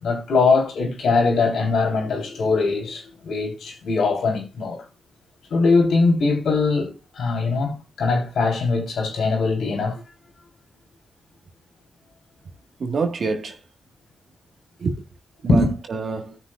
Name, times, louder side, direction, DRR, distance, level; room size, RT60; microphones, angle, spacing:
voice 1, 0.0-4.9 5.5-10.0 15.5-15.7, left 3 dB, 80° left, 3.5 m, -21 dB
voice 2, 12.8-13.6 14.8-15.0 15.4-16.4, right 4 dB, 65° right, 1.6 m, -27 dB
17.0 x 6.4 x 2.4 m
cardioid pair, 55°, 0 cm